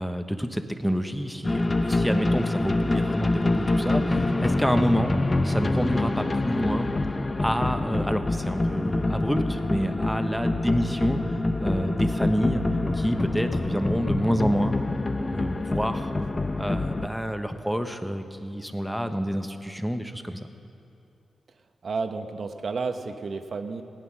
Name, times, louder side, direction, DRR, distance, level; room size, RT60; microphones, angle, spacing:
voice 1, 0.0-5.1 5.4-6.9 7.4-11.2 11.6-12.6 12.9-14.7 15.3-16.1 16.6-20.5, equal, ahead, 7 dB, 1.1 m, -28 dB
sound 1, 1.4-17.1, left 2 dB, 35° left, 0.8 m, -26 dB
voice 2, 21.8-23.8, right 4 dB, 65° right, 7 dB, 1.0 m, -31 dB
16.0 x 9.4 x 6.2 m, 2.6 s
cardioid pair, 50°, 0 cm